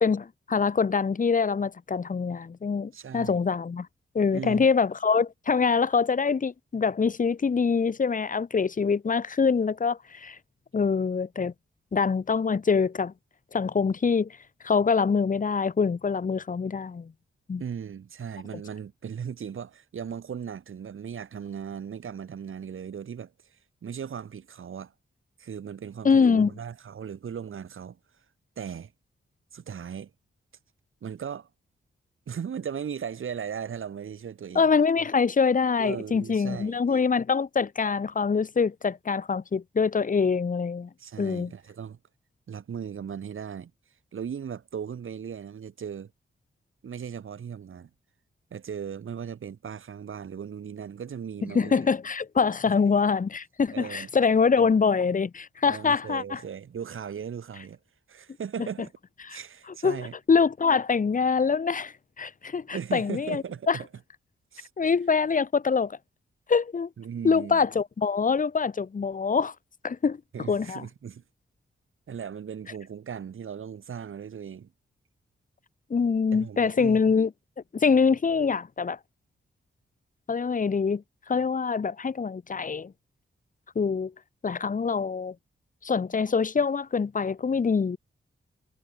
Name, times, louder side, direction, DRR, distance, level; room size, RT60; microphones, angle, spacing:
voice 1, 0.0-3.9 4.1-10.4 10.7-11.5 11.9-13.1 13.5-14.4 14.6-17.1 17.5-17.6 26.0-26.5 34.5-40.9 41.2-41.5 51.5-56.4 59.8-63.8 64.8-66.0 66.5-66.9 67.2-69.5 69.8-70.2 70.5-70.9 75.9-77.3 77.7-79.0 80.3-82.9 83.7-84.1 84.4-85.3 85.8-88.0, left 5 dB, 40° left, 1.1 m, -24 dB
voice 2, 2.9-3.4 4.3-4.7 17.6-23.6 23.8-24.9 25.4-28.0 28.6-28.9 29.5-30.1 31.0-31.5 32.3-34.7 35.0-35.1 35.8-37.1 41.0-42.0 42.5-43.7 44.1-46.1 46.8-47.9 48.5-51.9 52.7-52.8 53.7-54.1 54.6-54.7 55.7-57.8 58.1-58.9 59.3-60.1 62.7-63.9 64.5-64.7 67.0-67.6 70.3-71.2 72.1-74.7 76.3-77.0, right 7 dB, 75° right, 3.4 m, -37 dB
wide cardioid pair, 95°, 21 cm